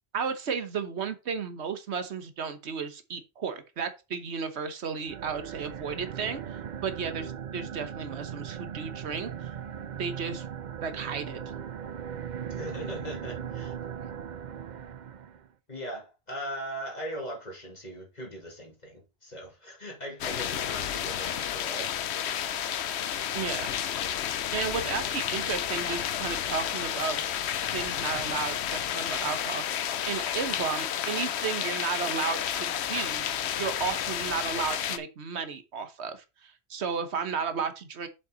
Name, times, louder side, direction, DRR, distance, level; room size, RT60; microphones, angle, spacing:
voice 1, 0.1-6.4 6.8-9.5 10.0-10.4 10.8-11.4 23.3-23.7 24.5-27.2 27.7-33.3 33.6-38.1, right 6 dB, 90° right, 1.3 m, -33 dB
sound 1, 5.0-15.5, right 8 dB, 50° right, 0.7 m, -38 dB
voice 2, 12.5-13.7 15.7-21.9 24.7-25.1, equal, 40° left, 2.9 m, -39 dB
sound 2, 20.2-35.0, left 9 dB, 80° left, 0.9 m, -31 dB
7.1 x 5.7 x 3.9 m
omnidirectional pair, 1.1 m